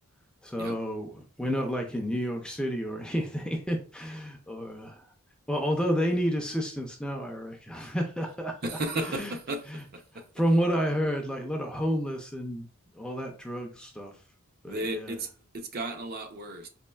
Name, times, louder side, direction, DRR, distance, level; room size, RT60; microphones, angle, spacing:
voice 1, 0.4-5.0 5.5-8.5 9.1-9.3 9.7-9.8 10.4-12.7 13.0-14.1 14.6-15.2, equal, 5° left, 0.4 m, -30 dB
voice 2, 8.6-10.3 14.7-16.7, right 2 dB, 45° right, 0.5 m, -34 dB
4.2 x 3.0 x 2.2 m
head